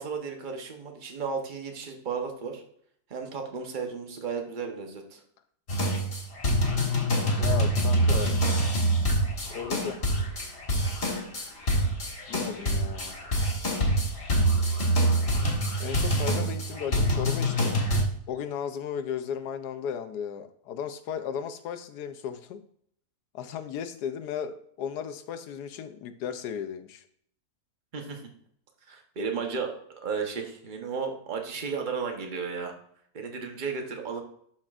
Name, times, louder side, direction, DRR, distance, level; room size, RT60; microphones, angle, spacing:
voice 1, 0.0-2.6 3.1-5.2 27.9-28.2 28.9-29.7 30.0-32.7 33.1-34.2, right 5 dB, 35° right, 3 dB, 1.0 m, -34 dB
sound 1, 5.7-18.0, right 1 dB, 40° left, 1.8 m, -26 dB
voice 2, 7.4-8.4 9.5-10.0 12.3-13.2 15.8-17.7 18.3-22.6 23.3-27.0, left 8 dB, 85° left, 9 dB, 1.3 m, -35 dB
11.5 x 4.4 x 2.5 m, 0.65 s
omnidirectional pair, 1.7 m